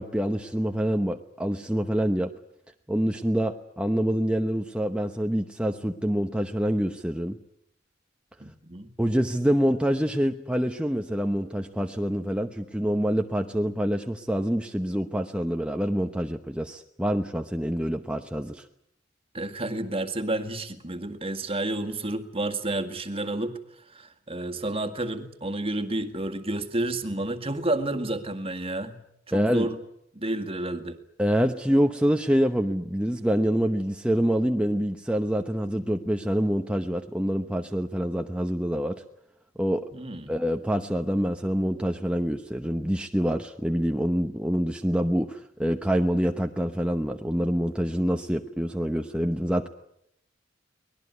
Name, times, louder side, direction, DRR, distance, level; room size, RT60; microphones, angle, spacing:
voice 1, 0.0-2.3 2.9-7.4 9.0-18.7 29.3-29.7 31.2-39.0 39.6-39.9 40.3-49.7, equal, 5° right, 4 dB, 1.0 m, -26 dB
voice 2, 8.4-8.9 19.3-23.6 23.9-29.0 29.3-29.8 30.1-31.0 39.9-40.3, right 1 dB, 30° right, 9 dB, 2.0 m, -30 dB
24.0 x 20.0 x 9.5 m, 0.76 s
head